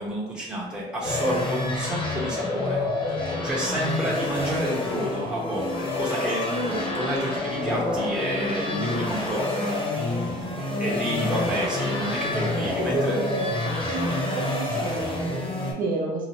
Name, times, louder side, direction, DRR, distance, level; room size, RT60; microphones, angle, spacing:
voice 1, 0.0-3.1 3.4-6.5 6.9-10.0 10.5-13.2, equal, 5° right, -7 dB, 0.8 m, -30 dB
sound 1, 1.0-15.7, left 2 dB, 30° left, 0.9 m, -28 dB
voice 2, 6.5-6.9 12.9-16.3, right 3 dB, 55° right, -4 dB, 0.8 m, -31 dB
2.8 x 2.0 x 3.1 m, 0.99 s
cardioid pair, 110°, 17 cm